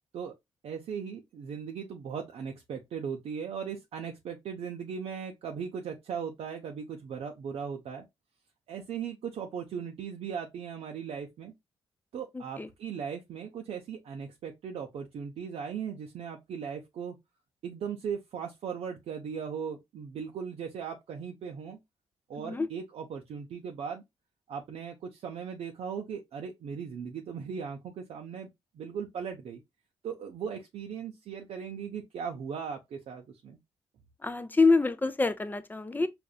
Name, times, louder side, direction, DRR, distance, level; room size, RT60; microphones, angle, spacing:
voice 1, 0.6-8.0 8.7-11.5 12.1-17.2 17.6-21.8 22.3-24.0 24.5-28.5 28.7-29.6 30.0-33.6, right 7 dB, 75° right, 0.6 m, -38 dB
voice 2, 12.3-12.7 22.4-22.7 34.2-36.1, left 3 dB, 15° left, 0.5 m, -26 dB
5.0 x 2.5 x 2.3 m
cardioid pair, 60°, 11 cm